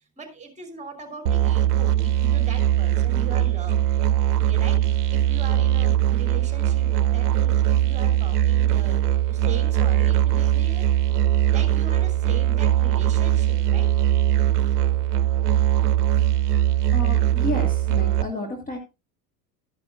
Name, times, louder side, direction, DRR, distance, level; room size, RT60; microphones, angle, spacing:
voice 1, 0.2-3.8 4.1-10.9 11.5-13.9, right 4 dB, 15° right, 5 dB, 3.0 m, -40 dB
Musical instrument, 1.3-18.2, right 12 dB, 65° right, 0.8 m, -21 dB
voice 2, 16.9-18.8, left 2 dB, 15° left, 3 dB, 1.9 m, -31 dB
13.0 x 10.5 x 2.5 m, 0.26 s
figure-of-eight pair, 70°, 49 cm